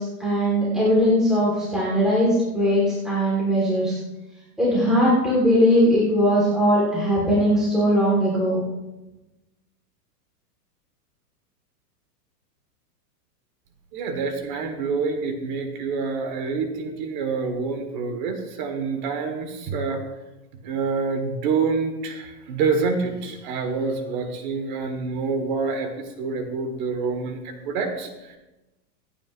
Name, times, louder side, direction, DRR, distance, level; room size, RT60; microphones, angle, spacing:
voice 1, 0.0-4.0 4.6-8.6, equal, ahead, -8 dB, 1.6 m, -20 dB
voice 2, 13.9-20.0 20.6-28.4, right 4 dB, 30° right, 6 dB, 1.5 m, -27 dB
25.5 x 8.8 x 2.6 m, 1.0 s
supercardioid pair, 175°, 49 cm